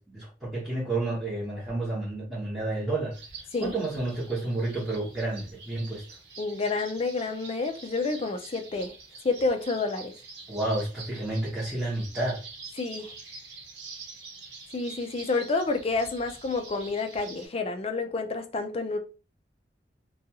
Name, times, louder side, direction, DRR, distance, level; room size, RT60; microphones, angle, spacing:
voice 1, 0.0-3.1 3.6-6.0 10.5-12.4, right 2 dB, 5° right, 1.0 m, -30 dB
sound 1, 3.1-17.5, right 4 dB, 80° right, 0.9 m, -46 dB
voice 2, 6.4-8.9 9.2-10.1 12.8-13.1 14.7-19.0, left 3 dB, 35° left, 0.4 m, -29 dB
2.5 x 2.3 x 2.8 m
head